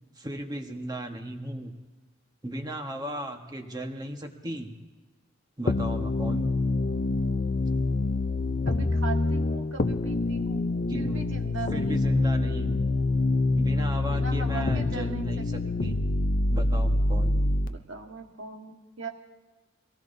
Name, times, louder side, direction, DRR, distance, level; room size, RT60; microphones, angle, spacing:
voice 1, 0.2-1.7 2.4-4.7 5.6-6.5 10.9-11.3 11.7-12.9 13.5-16.0 16.5-17.5, equal, 20° right, 3 dB, 1.4 m, -36 dB
sound 1, 5.7-17.7, left 2 dB, 45° left, 0.6 m, -26 dB
voice 2, 8.6-10.7 10.9-12.2 13.1-13.4 14.1-15.8 17.7-19.1, right 4 dB, 70° right, 3 dB, 1.7 m, -40 dB
24.0 x 18.5 x 2.7 m, 1.3 s
head